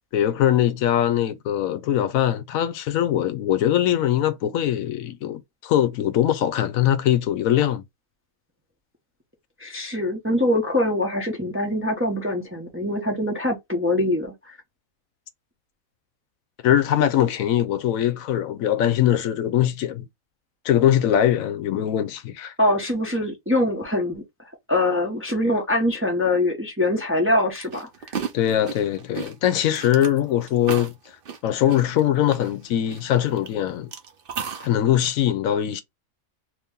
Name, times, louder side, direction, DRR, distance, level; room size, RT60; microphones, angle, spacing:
voice 1, 0.1-7.8 16.6-20.0 20.6-22.5 28.3-30.9 31.4-33.9 34.6-35.8, left 11 dB, 80° left, 1.0 m, -22 dB
voice 2, 9.6-14.6 22.6-24.2 24.7-27.9, left 1 dB, 15° right, 0.6 m, -23 dB
sound 1, 27.6-33.5 33.9-34.7, right 7 dB, 50° right, 0.8 m, -34 dB
2.9 x 2.7 x 3.5 m
omnidirectional pair, 1.5 m